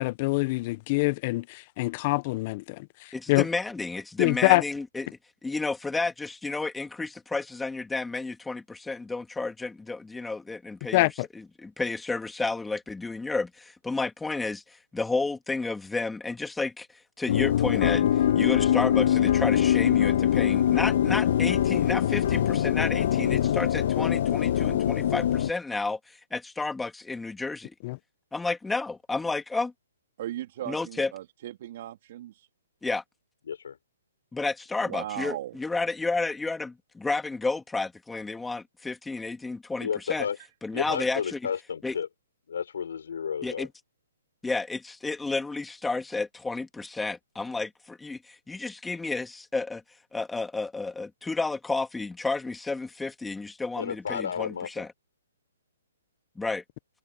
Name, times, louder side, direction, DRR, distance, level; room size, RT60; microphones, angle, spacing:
voice 1, 0.0-3.4 4.2-4.6 10.9-11.3 27.8-28.0, left 23 dB, 35° left, 1.2 m, -25 dB
voice 2, 3.1-5.1 5.4-11.1 11.3-16.9 17.2-27.7 28.3-29.7 30.7-31.1 32.8-33.0 34.3-40.3 40.6-41.4 41.8-42.0 43.4-43.7 44.4-49.8 50.1-54.9 56.3-56.6, left 3 dB, 5° left, 3.0 m, -31 dB
sound 1, 17.3-25.5, left 10 dB, 55° left, 0.4 m, -23 dB
voice 3, 30.2-32.5 34.8-35.5, right 13 dB, 50° right, 2.6 m, -37 dB
voice 4, 33.5-33.8 39.8-40.4 40.7-42.1 42.5-43.7 53.8-54.9, left 7 dB, 70° left, 4.3 m, -32 dB
hypercardioid pair, 140°, 0 cm